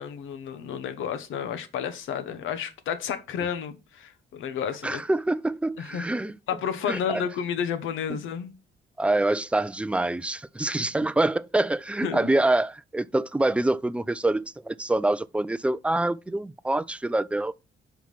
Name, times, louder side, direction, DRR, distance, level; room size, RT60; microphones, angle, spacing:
voice 1, 0.0-5.0 5.8-6.1 6.5-8.5 12.0-12.3, left 8 dB, 80° left, 1.1 m, -31 dB
voice 2, 4.8-6.4 6.9-7.2 8.1-8.2 9.0-17.6, right 2 dB, 5° right, 0.4 m, -26 dB
5.7 x 4.7 x 5.5 m
cardioid pair, 90°, 20 cm